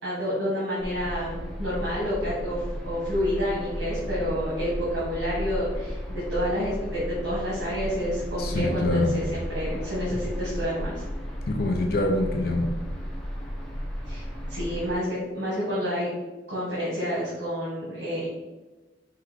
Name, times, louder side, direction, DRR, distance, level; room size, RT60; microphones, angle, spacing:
voice 1, 0.0-11.1 14.0-16.1 16.5-18.3, equal, 80° right, -7 dB, 1.5 m, -29 dB
sound 1, 0.8-15.0, equal, 5° left, 0.7 m, -34 dB
voice 2, 8.4-9.2 11.5-12.7, left 2 dB, 55° left, 3 dB, 0.5 m, -25 dB
4.7 x 2.9 x 3.4 m, 1.2 s
head